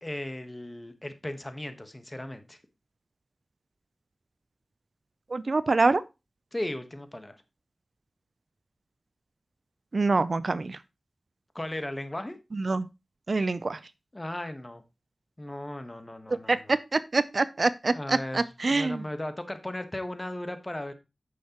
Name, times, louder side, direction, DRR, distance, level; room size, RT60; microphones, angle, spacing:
voice 1, 0.0-2.6 6.5-7.4 11.5-12.4 14.1-14.8 15.4-16.8 17.9-20.9, left 1 dB, 25° left, 1.2 m, -36 dB
voice 2, 5.3-6.0 9.9-10.8 12.5-12.9 13.3-13.8 16.5-19.0, right 3 dB, 60° right, 0.4 m, -25 dB
9.2 x 6.5 x 2.9 m
wide cardioid pair, 55°, 0 cm